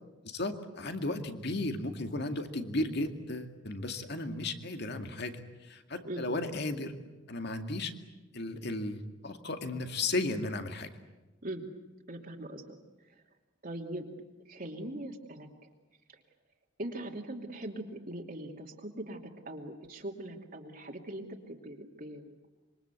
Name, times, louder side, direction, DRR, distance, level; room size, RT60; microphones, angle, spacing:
voice 1, 0.2-6.9 7.3-7.9 8.3-10.9, left 2 dB, 60° left, 6 dB, 2.2 m, -35 dB
voice 2, 12.1-13.1 13.6-14.1 14.5-15.5 16.1-16.2 16.8-22.5, right 1 dB, 45° right, 1 dB, 2.7 m, -41 dB
26.0 x 24.0 x 8.3 m, 1.1 s
head